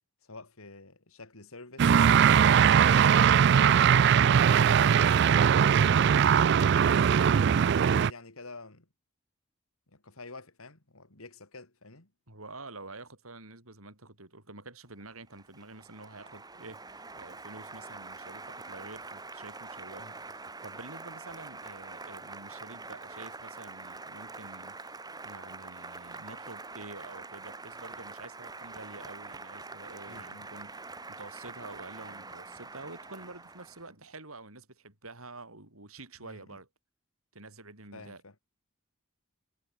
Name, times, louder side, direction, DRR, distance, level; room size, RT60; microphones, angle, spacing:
voice 1, 0.2-2.7 3.1-5.1 5.7-6.5 6.9-7.4 7.7-8.9 9.9-12.1 20.0-20.2 30.1-30.5 36.2-36.6 37.9-38.4, left 3 dB, 85° left, 3.7 m, -49 dB
sound 1, 1.8-8.1, right 8 dB, 55° right, 0.3 m, -21 dB
voice 2, 12.3-25.0 25.2-36.7 37.3-38.2, right 2 dB, 90° right, 7.5 m, -48 dB
Applause, 15.0-33.9, right 3 dB, 20° right, 3.0 m, -45 dB
head